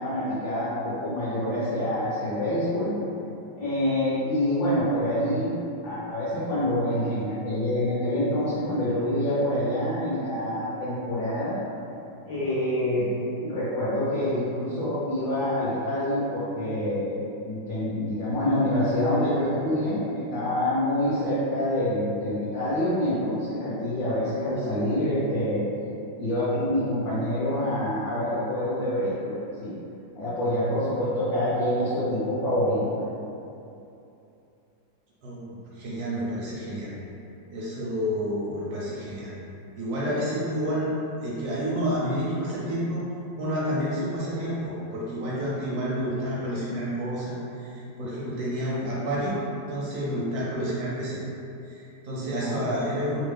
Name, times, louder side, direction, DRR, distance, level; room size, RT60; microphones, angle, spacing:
voice 1, 0.0-2.9 3.6-5.6 5.8-11.6 12.3-13.1 13.4-17.2 17.5-25.7 26.2-29.3 29.6-29.7 30.1-32.8 40.0-40.2 52.4-52.8, left 1 dB, 60° left, -11 dB, 0.9 m, -26 dB
voice 2, 35.2-36.9 37.5-39.3 39.8-41.0 41.2-43.0 43.4-49.4 49.7-51.2 51.7-53.3, equal, 65° right, -7 dB, 1.0 m, -29 dB
3.2 x 2.3 x 3.3 m, 2.7 s
omnidirectional pair, 2.1 m